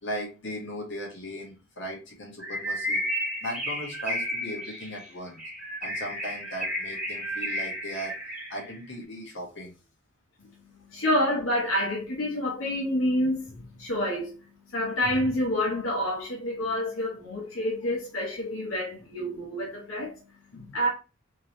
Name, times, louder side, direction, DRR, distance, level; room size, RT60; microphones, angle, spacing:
voice 1, 0.0-3.0 3.4-5.4 5.8-8.1 8.5-9.7, equal, 60° left, 1.6 m, -37 dB
Bird, 2.4-8.7, equal, 5° right, 1.0 m, -32 dB
voice 2, 10.7-20.1 20.5-20.9, left 1 dB, 90° left, 1.1 m, -28 dB
3.7 x 3.0 x 3.1 m
head